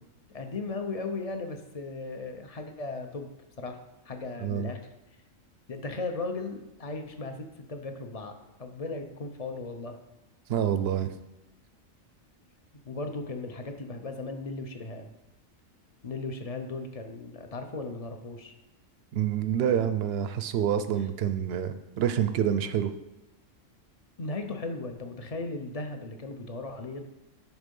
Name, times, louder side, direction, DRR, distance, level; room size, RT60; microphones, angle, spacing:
voice 1, 0.3-3.3 3.6-3.8 4.0-4.8 5.7-10.0 12.8-15.1 16.0-18.5 24.2-27.1, left 3 dB, 40° left, 6 dB, 0.5 m, -36 dB
voice 2, 4.4-4.7 10.5-11.1 19.1-22.9, right 9 dB, 65° right, 11 dB, 0.6 m, -27 dB
10.5 x 3.6 x 5.3 m, 0.95 s
omnidirectional pair, 1.4 m